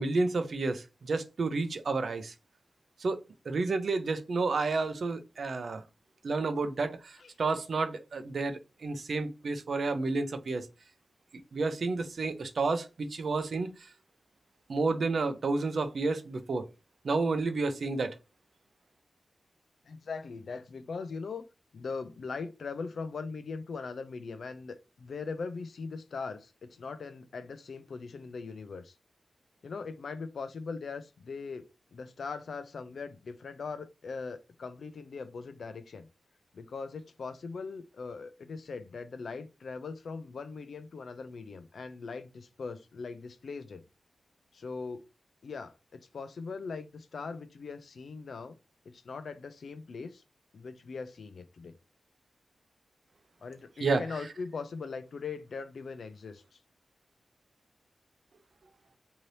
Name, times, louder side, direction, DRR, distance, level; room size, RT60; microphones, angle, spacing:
voice 1, 0.0-2.3 3.0-3.2 3.5-5.8 6.2-10.7 11.5-13.7 14.7-16.7 17.0-18.1 53.8-54.0, right 3 dB, 60° right, 0.5 m, -30 dB
voice 2, 19.9-21.4 21.7-28.9 29.6-31.6 31.9-36.1 36.5-43.8 44.5-45.0 45.4-48.6 48.9-50.2 50.5-51.8 53.4-56.6, left 4 dB, 70° left, 0.3 m, -40 dB
2.8 x 2.6 x 3.1 m
wide cardioid pair, 140°, 0 cm